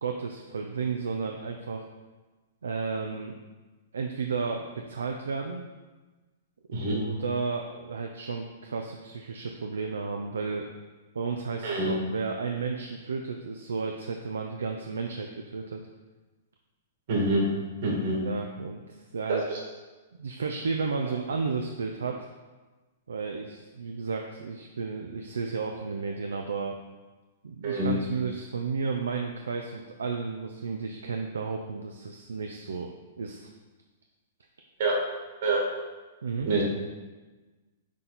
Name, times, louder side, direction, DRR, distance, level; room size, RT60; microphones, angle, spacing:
voice 1, 0.0-1.8 2.6-3.3 3.9-5.6 6.8-10.7 11.1-15.8 17.9-18.0 18.2-19.4 20.2-22.3 23.1-26.8 27.4-32.9 33.2-33.5 36.2-36.5, right 5 dB, 75° right, 3 dB, 0.4 m, -33 dB
voice 2, 17.1-17.4 17.8-18.2 19.5-19.6 27.6-27.9 34.8-34.9 35.4-35.6 36.5-36.6, right 2 dB, 55° right, -2 dB, 1.8 m, -26 dB
6.0 x 4.3 x 4.0 m, 1.2 s
figure-of-eight pair, 110°, 0 cm